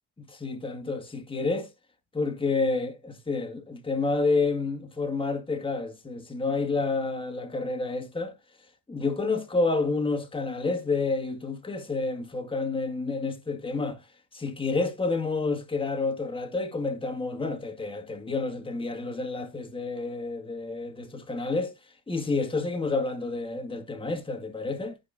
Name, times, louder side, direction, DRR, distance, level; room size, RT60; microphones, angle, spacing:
voice 1, 0.3-1.7 2.1-8.3 8.9-14.0 14.3-21.7 22.1-25.0, left 3 dB, 10° left, 2.0 m, -29 dB
15.5 x 5.3 x 2.7 m
supercardioid pair, 90°, 47 cm